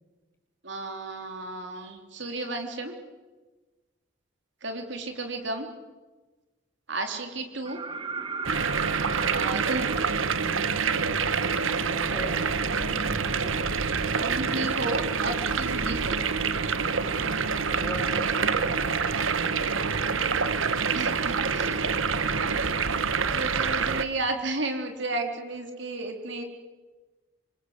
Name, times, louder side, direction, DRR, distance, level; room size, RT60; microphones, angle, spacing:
voice 1, 0.6-3.0 4.6-5.7 6.9-7.8 9.3-10.0 14.2-16.2 20.9-21.8 23.3-26.4, right 2 dB, 60° right, 4 dB, 3.4 m, -33 dB
sound 1, 7.6-11.4 13.3-13.4, right 4 dB, 25° right, 1.7 m, -37 dB
sound 2, 8.4-24.0, right 5 dB, 75° right, 1.3 m, -26 dB
voice 2, 11.7-13.5 17.8-20.2 21.0-22.6, equal, 10° left, 1 dB, 6.3 m, -42 dB
27.0 x 26.5 x 8.1 m, 1.2 s
head